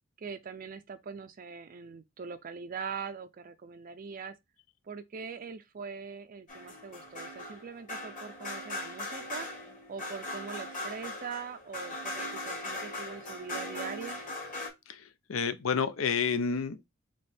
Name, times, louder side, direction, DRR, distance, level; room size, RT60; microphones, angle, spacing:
voice 1, 0.2-4.4 4.8-9.5 9.9-14.2, right 5 dB, 40° right, 0.4 m, -42 dB
sound 1, 6.5-14.7, left 1 dB, 40° left, 1.8 m, -39 dB
voice 2, 14.9-16.9, left 6 dB, 75° left, 0.6 m, -30 dB
4.2 x 3.0 x 3.4 m
head